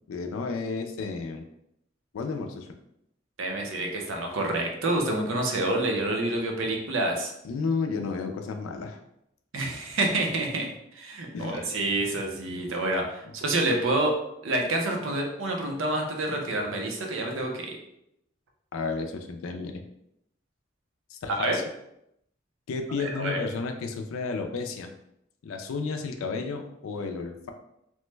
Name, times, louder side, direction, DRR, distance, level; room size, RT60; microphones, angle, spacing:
voice 1, 0.1-1.4 2.1-2.7 7.4-9.0 11.3-11.7 18.7-19.8 21.1-21.6 22.7-24.9 25.4-27.5, left 4 dB, 90° left, 5 dB, 0.4 m, -32 dB
voice 2, 3.4-7.3 9.5-14.2 14.4-17.8 21.3-21.6 23.0-23.4, right 2 dB, 75° right, 2 dB, 0.6 m, -28 dB
3.0 x 2.1 x 3.2 m, 0.79 s
head